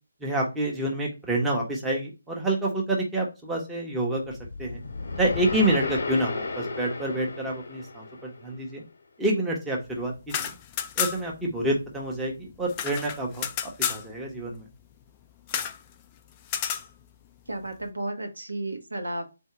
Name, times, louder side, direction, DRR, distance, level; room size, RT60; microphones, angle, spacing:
voice 1, 0.2-4.8 5.2-8.8 9.2-10.5 11.0-14.7, right 1 dB, 5° right, -2 dB, 0.9 m, -28 dB
sound 1, 4.3-8.6, left 3 dB, 55° left, 0.7 m, -33 dB
sound 2, 10.2-11.4 11.7-11.8 12.0-14.0 15.5-15.8 16.4-16.9, left 8 dB, 20° left, 0.3 m, -30 dB
voice 2, 17.5-19.3, right 1 dB, 75° right, 4 dB, 1.1 m, -33 dB
3.9 x 2.7 x 4.6 m, 0.27 s
figure-of-eight pair, 145°, 0 cm